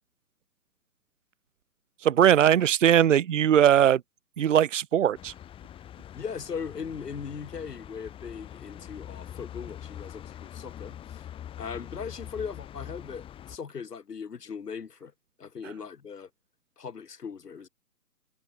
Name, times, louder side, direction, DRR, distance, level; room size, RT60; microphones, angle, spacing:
voice 1, 2.0-4.0 4.4-5.3, right 10 dB, 50° right, 0.6 m, -20 dB
sound 1, 5.1-13.6, left 10 dB, 10° left, 2.2 m, -44 dB
voice 2, 6.1-11.3 11.6-15.1 15.4-16.3 16.8-17.7, left 6 dB, 70° left, 2.2 m, -39 dB
figure-of-eight pair, 140°, 50 cm